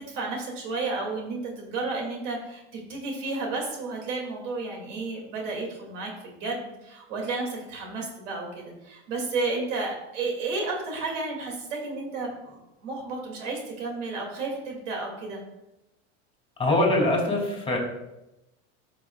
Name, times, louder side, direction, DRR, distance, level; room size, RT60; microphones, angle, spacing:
voice 1, 0.1-15.4, right 3 dB, 85° right, 0 dB, 2.6 m, -32 dB
voice 2, 16.6-17.8, left 1 dB, 15° left, 0 dB, 3.0 m, -23 dB
12.0 x 6.2 x 2.4 m, 0.91 s
supercardioid pair, 100°, 36 cm